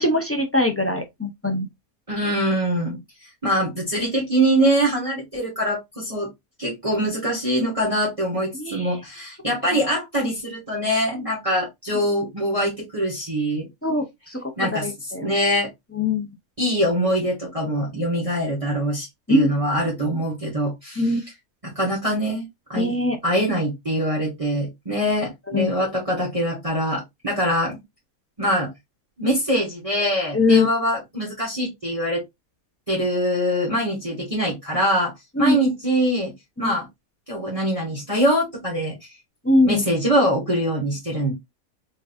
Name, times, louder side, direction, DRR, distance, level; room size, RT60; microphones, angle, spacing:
voice 1, 0.0-1.7 8.5-8.9 13.8-14.4 14.7-15.3 16.0-16.3 19.3-19.5 21.0-21.2 22.8-23.2 25.5-25.7 30.3-30.7 35.4-35.6 36.6-36.7 39.4-39.8, left 2 dB, 15° left, 0.6 m, -21 dB
voice 2, 2.1-3.0 3.4-6.3 6.6-13.7 14.6-15.7 16.6-21.2 21.6-22.4 22.7-22.9 23.2-27.8 28.4-28.7 29.2-32.2 32.9-35.1 35.4-36.3 36.6-36.9 37.3-38.9 39.6-41.3, equal, 25° right, 1.6 m, -23 dB
3.8 x 3.7 x 2.5 m
omnidirectional pair, 1.5 m